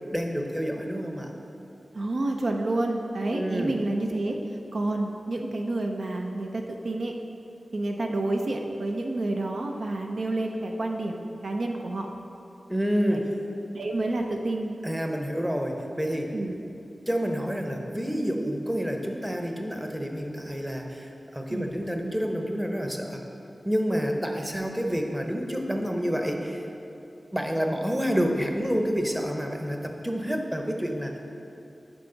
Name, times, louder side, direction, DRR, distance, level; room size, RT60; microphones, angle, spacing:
voice 1, 0.1-1.3 3.3-3.7 12.7-13.2 14.8-16.3 17.1-23.2 23.6-26.7 27.3-31.2, equal, 10° right, 3 dB, 0.9 m, -28 dB
voice 2, 1.9-4.4 4.7-7.1 7.7-12.1 13.1-13.2 13.7-14.7 16.3-16.5 21.5-21.7, right 2 dB, 75° right, 2 dB, 0.5 m, -29 dB
10.5 x 4.8 x 3.9 m, 2.7 s
cardioid pair, 50°, 0 cm